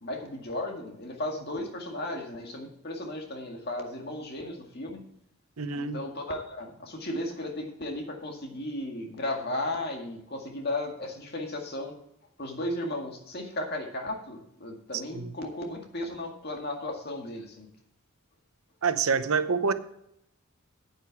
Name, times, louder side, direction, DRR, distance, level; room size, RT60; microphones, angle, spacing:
voice 1, 0.0-5.0 5.7-11.9 12.4-17.7, left 1 dB, 45° left, 2 dB, 2.0 m, -35 dB
voice 2, 5.6-6.0 15.1-15.3 18.8-19.7, right 5 dB, 80° right, 11 dB, 0.8 m, -26 dB
9.4 x 9.2 x 4.7 m, 0.75 s
head